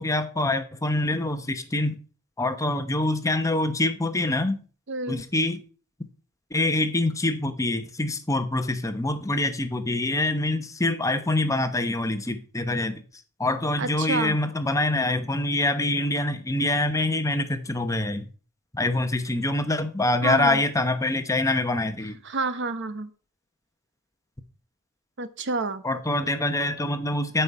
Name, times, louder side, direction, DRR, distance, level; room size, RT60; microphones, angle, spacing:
voice 1, 0.0-2.0 2.4-4.6 5.1-5.6 6.5-13.0 13.4-18.3 18.7-22.2 25.8-27.4, left 2 dB, 15° left, 0.9 m, -25 dB
voice 2, 4.9-5.2 13.8-14.4 20.2-20.6 22.2-23.1 25.2-25.8, right 3 dB, 60° right, 1.0 m, -29 dB
13.5 x 5.6 x 4.7 m
head